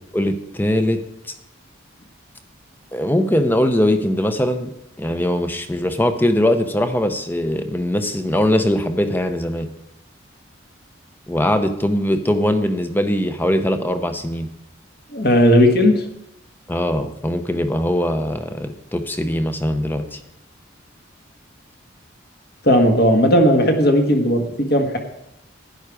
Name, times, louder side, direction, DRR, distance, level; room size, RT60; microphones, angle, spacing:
voice 1, 0.1-1.0 1.3-1.4 2.9-4.7 5.0-9.7 11.3-14.5 16.7-20.2, left 1 dB, 10° left, 8 dB, 0.7 m, -21 dB
voice 2, 15.1-16.0 22.6-25.0, equal, 50° left, 3 dB, 1.6 m, -15 dB
11.5 x 9.9 x 4.8 m, 0.82 s
head